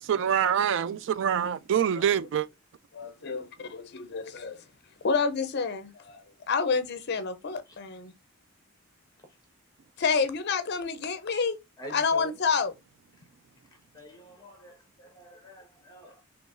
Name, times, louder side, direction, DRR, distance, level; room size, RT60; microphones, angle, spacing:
voice 1, 0.0-2.5, right 8 dB, 60° right, 0.3 m, -25 dB
voice 2, 2.9-4.6 5.0-8.1 10.0-11.6 11.9-12.7, left 5 dB, 50° left, 0.6 m, -29 dB
voice 3, 11.8-12.4 13.2-13.3 13.7-16.2, equal, 20° left, 1.1 m, -47 dB
3.8 x 2.9 x 2.4 m
head